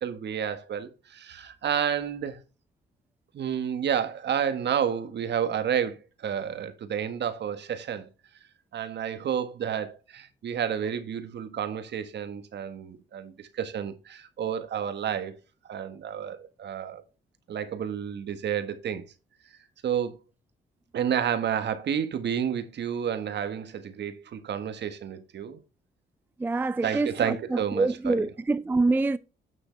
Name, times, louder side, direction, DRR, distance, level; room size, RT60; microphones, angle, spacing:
voice 1, 0.0-2.4 3.3-8.1 8.7-15.3 15.7-17.0 17.5-19.0 19.8-20.2 20.9-25.6 26.8-28.3, right 8 dB, 60° right, 1.5 m, -30 dB
voice 2, 26.4-29.2, right 3 dB, 10° right, 0.3 m, -26 dB
8.9 x 6.4 x 3.3 m
cardioid pair, 90°, 20 cm